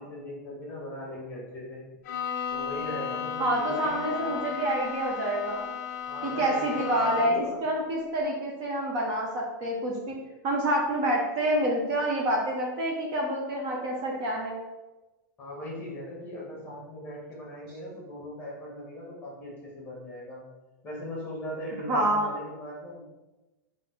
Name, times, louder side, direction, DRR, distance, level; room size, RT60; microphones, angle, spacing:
voice 1, 0.0-1.8 2.5-4.6 6.1-7.6 15.4-20.4 20.8-23.0, left 1 dB, 15° left, -4 dB, 1.2 m, -39 dB
Bowed string instrument, 2.0-7.6, left 7 dB, 45° left, 0.5 m, -34 dB
voice 2, 3.4-5.7 6.2-10.1 10.4-14.6 21.9-22.3, right 1 dB, 35° right, -2 dB, 0.7 m, -27 dB
3.9 x 2.6 x 3.7 m, 1.1 s
supercardioid pair, 165°, 11 cm